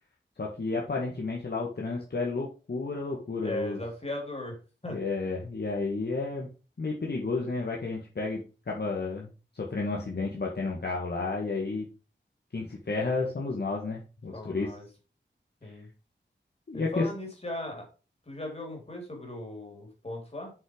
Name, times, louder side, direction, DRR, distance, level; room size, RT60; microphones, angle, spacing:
voice 1, 0.4-3.8 4.9-6.5 6.8-11.9 12.5-14.7 15.6-15.7 16.7-17.1, left 3 dB, 55° left, -1 dB, 1.8 m, -32 dB
voice 2, 3.4-4.6 4.8-5.0 14.3-14.8 15.6-15.9 16.7-17.8 18.3-20.5, left 1 dB, 30° left, 1 dB, 4.0 m, -37 dB
7.9 x 5.6 x 5.0 m, 0.33 s
wide cardioid pair, 95°, 19 cm